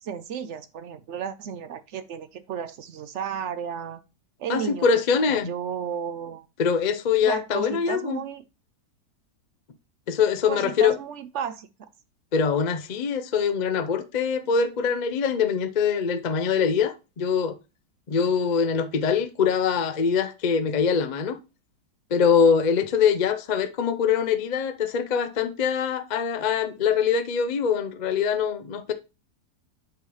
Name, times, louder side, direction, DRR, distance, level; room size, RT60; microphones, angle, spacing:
voice 1, 0.0-4.0 4.4-4.9 5.3-6.5 7.2-8.4 10.5-11.9, right 8 dB, 65° right, 0.7 m, -33 dB
voice 2, 4.5-5.5 6.6-8.2 10.1-10.9 12.3-17.6 18.1-21.4 22.1-28.9, left 6 dB, 55° left, 0.4 m, -23 dB
8.0 x 3.1 x 5.5 m
omnidirectional pair, 1.7 m